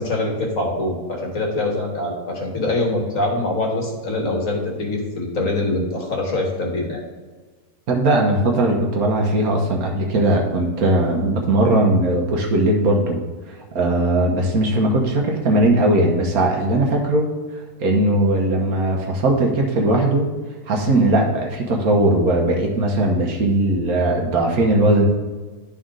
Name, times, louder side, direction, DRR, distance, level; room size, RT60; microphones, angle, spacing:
voice 1, 0.0-7.0, left 2 dB, 60° left, 0 dB, 1.7 m, -24 dB
voice 2, 7.9-13.2 13.5-17.3 17.8-20.3 20.7-25.0, right 1 dB, 75° right, 1 dB, 1.6 m, -19 dB
11.0 x 4.3 x 3.8 m, 1.4 s
omnidirectional pair, 1.6 m